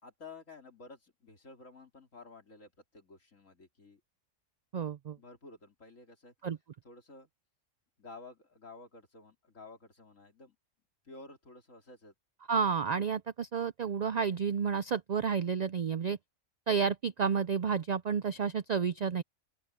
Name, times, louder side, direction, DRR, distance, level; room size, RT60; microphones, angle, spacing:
voice 1, 0.0-4.0 5.2-6.3 6.8-7.3 8.0-10.6 11.0-12.1, left 3 dB, 85° left, 3.8 m, -52 dB
voice 2, 4.7-5.2 6.4-6.6 12.5-16.2 16.7-19.2, right 6 dB, 85° right, 0.3 m, -31 dB
open air
omnidirectional pair, 1.3 m